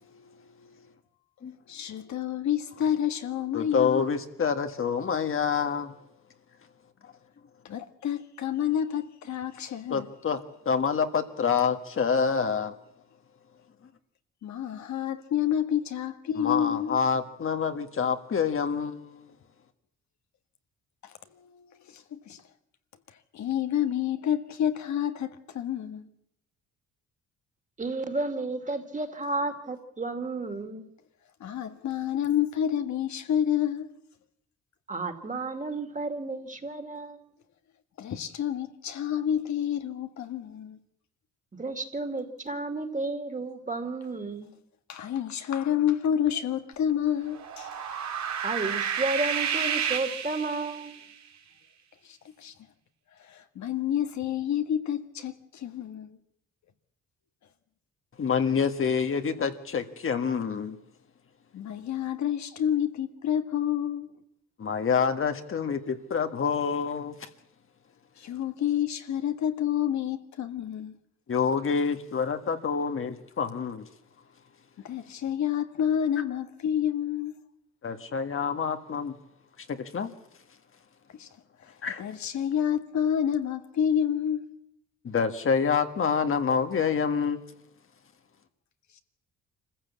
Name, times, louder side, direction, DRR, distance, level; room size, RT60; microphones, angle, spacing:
voice 1, 0.1-0.7 1.7-4.1 7.6-10.1 14.4-17.0 21.0-22.4 23.3-26.1 31.4-33.9 38.0-40.8 44.9-47.7 52.0-52.5 53.2-56.2 61.5-64.1 68.2-70.9 74.8-77.4 81.1-81.3 82.0-84.5, left 9 dB, 65° left, 1.7 m, -29 dB
voice 2, 3.5-5.9 9.9-10.4 10.6-12.7 16.4-19.2 58.2-60.8 64.6-67.3 71.3-73.9 77.8-79.1 79.7-80.1 81.8-82.0 85.0-87.5, left 6 dB, 45° left, 1.7 m, -27 dB
voice 3, 27.8-30.9 34.9-37.2 41.5-44.5 48.4-51.1, right 3 dB, 25° right, 2.5 m, -32 dB
sound 1, 47.3-51.0, right 8 dB, 65° right, 2.3 m, -30 dB
25.0 x 15.0 x 8.4 m
cardioid pair, 90°, 30 cm